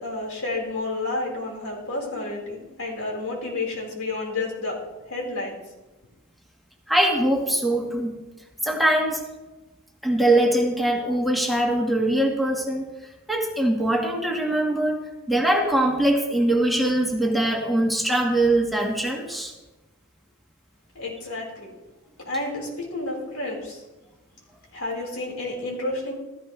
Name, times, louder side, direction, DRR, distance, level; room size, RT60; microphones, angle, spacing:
voice 1, 0.0-5.6 20.9-21.7 22.2-23.8 24.7-26.1, left 2 dB, 70° left, -2 dB, 4.4 m, -30 dB
voice 2, 6.9-8.2 8.6-9.2 10.0-12.8 13.3-15.0 15.3-19.5, right 1 dB, ahead, -1 dB, 1.6 m, -22 dB
15.5 x 14.0 x 3.3 m, 1.1 s
head